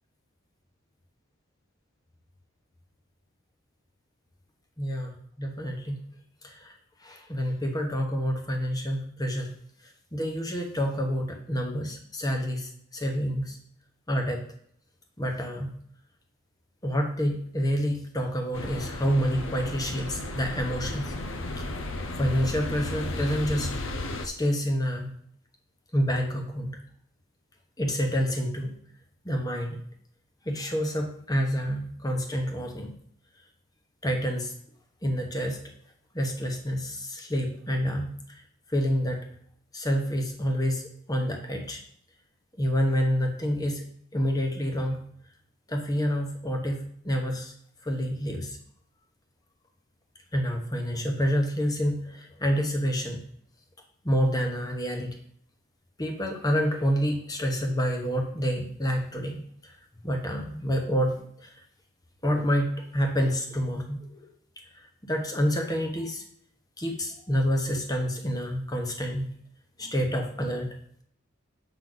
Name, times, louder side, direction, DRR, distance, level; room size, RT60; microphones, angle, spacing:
voice 1, 4.8-5.1 5.4-6.0 6.4-6.7 7.0-9.5 10.1-13.6 14.1-14.4 15.2-15.7 16.8-21.1 21.5-21.7 22.2-23.7 24.2-25.1 25.9-26.7 27.8-28.7 29.2-29.8 30.4-32.9 34.0-34.5 35.0-35.6 36.1-38.1 38.7-39.2 39.7-40.8 41.1-41.8 42.6-43.8 44.1-45.0 45.7-47.5 47.8-48.6 50.3-53.2 54.0-55.1 56.0-59.7 60.0-61.2 61.4-61.5 62.2-64.2 65.0-66.2 66.8-69.3 69.8-70.7, equal, 15° left, 2 dB, 1.1 m, -28 dB
sound 1, 18.5-24.3, left 2 dB, 65° left, 0.7 m, -34 dB
7.7 x 6.0 x 4.0 m, 0.64 s
head